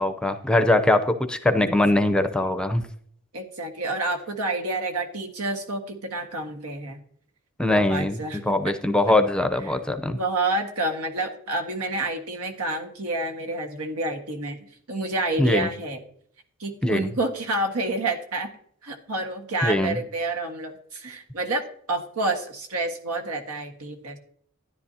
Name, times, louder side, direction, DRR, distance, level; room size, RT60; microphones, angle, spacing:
voice 1, 0.0-2.8 7.6-8.2 8.5-10.2 15.4-15.7 16.8-17.1 19.6-20.0, left 1 dB, 5° left, 8 dB, 0.6 m, -22 dB
voice 2, 1.6-2.1 2.4-2.6 3.3-7.0 7.7-9.2 9.6-9.8 10.1-16.0 16.6-18.5 18.8-24.2, right 2 dB, 90° right, 5 dB, 1.6 m, -29 dB
13.0 x 10.5 x 2.8 m, 0.63 s
head